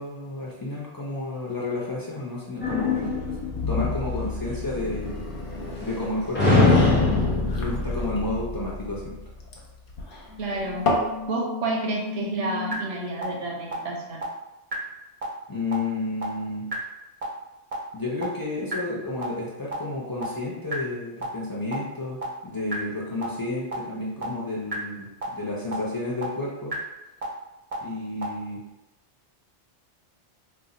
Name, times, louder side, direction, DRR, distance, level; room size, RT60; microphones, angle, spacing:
voice 1, 0.0-3.1 3.7-5.3 5.8-6.9 7.5-9.2 15.5-16.7 17.9-26.7 27.8-28.6, left 2 dB, 30° left, -5 dB, 0.4 m, -31 dB
sound 1, 2.6-6.0 6.3-9.0, left 3 dB, 10° left, 0.8 m, -24 dB
sound 2, 4.7-11.2, left 1 dB, 55° left, 0.7 m, -33 dB
sound 3, 10.3-12.7 13.2-13.3 13.7-13.8 14.2-14.3 14.7-14.8 15.2-15.3 15.7-15.8 16.2-16.3 16.7-16.8 17.2-17.3 17.7-17.8 18.2-18.3 18.7-18.8 19.2-19.3 19.7-19.8 20.2-20.3 20.7-20.8 21.2-21.3 21.7-21.8 22.2-22.3 22.7-22.8 23.2-23.3 23.7-23.8 24.2-24.3 24.7-24.8 25.2-25.3 25.7-25.8 26.2-26.3 26.7-26.8 27.2-27.3 27.7-27.8 28.2-28.3, equal, 45° right, 0.5 m, -33 dB
voice 2, 10.4-10.8 11.3-14.3, right 2 dB, 85° right, 0 dB, 1.0 m, -30 dB
2.5 x 2.1 x 3.7 m, 0.97 s
omnidirectional pair, 1.2 m